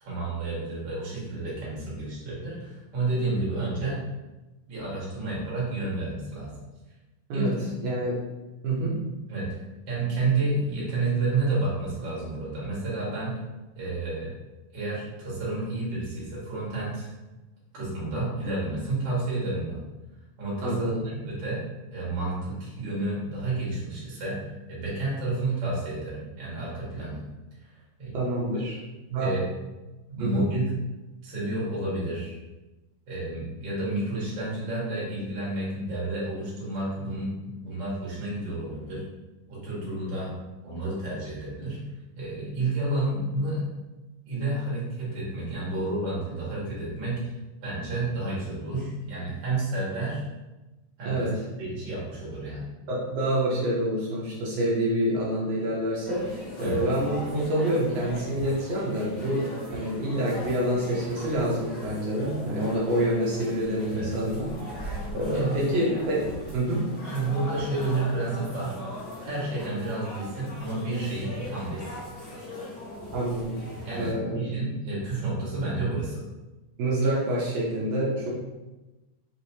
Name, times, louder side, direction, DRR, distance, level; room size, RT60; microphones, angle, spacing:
voice 1, 0.0-4.0 4.7-6.6 7.3-7.7 9.3-9.5 9.9-13.4 13.7-14.3 14.7-17.1 17.7-19.8 20.4-21.6 21.9-24.4 24.7-27.2 28.0-28.2 28.5-28.7 29.2-29.4 30.1-30.7 31.2-32.3 33.1-39.0 39.5-40.3 40.6-41.8 42.1-43.6 44.2-47.2 47.6-50.2 51.0-51.3 51.6-52.6 56.6-56.8 63.9-64.2 65.3-65.6 67.1-68.8 69.2-72.0 73.8-76.2, right 2 dB, 45° right, -7 dB, 1.7 m, -30 dB
voice 2, 7.8-8.2 8.6-9.0 20.6-21.0 28.1-28.8 29.1-29.4 30.2-30.5 51.0-51.4 52.9-64.5 65.1-66.8 73.1-73.6 73.9-74.5 76.8-78.3, right 1 dB, 80° right, -6 dB, 1.4 m, -27 dB
sound 1, 56.0-74.1, left 1 dB, 70° left, 0.7 m, -39 dB
5.0 x 3.1 x 2.7 m, 1.1 s
omnidirectional pair, 4.0 m